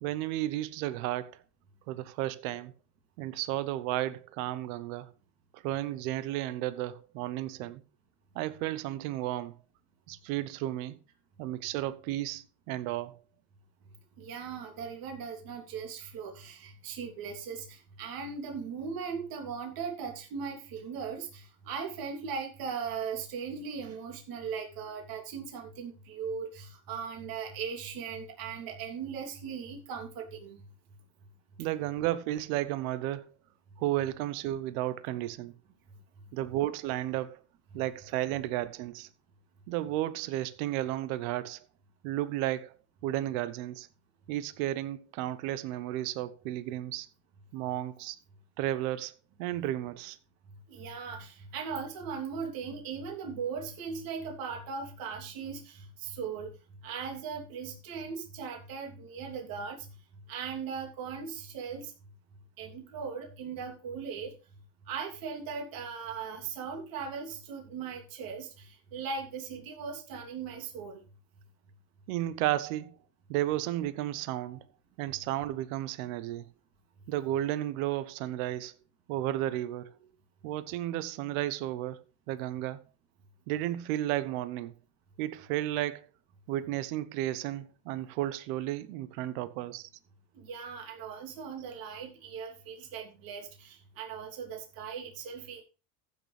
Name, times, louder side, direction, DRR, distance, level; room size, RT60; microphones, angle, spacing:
voice 1, 0.0-1.4 1.9-2.7 3.2-5.1 5.5-7.8 8.3-9.5 10.1-11.0 11.4-13.2 31.6-33.2 33.8-35.5 36.3-37.4 37.7-39.1 39.7-41.6 42.0-42.7 43.0-43.9 44.3-47.1 47.5-48.2 48.6-49.1 49.4-50.2 72.1-72.9 73.3-74.6 75.0-76.5 77.1-78.8 79.1-80.0 80.4-82.8 83.5-84.8 85.2-86.1 86.5-89.9, right 14 dB, 75° right, 1.0 m, -33 dB
voice 2, 14.2-30.6 50.7-56.5 56.8-59.9 60.3-61.9 62.6-64.3 64.9-71.0 90.4-95.6, right 6 dB, 55° right, 3.2 m, -38 dB
15.0 x 6.8 x 3.3 m
supercardioid pair, 120°, 42 cm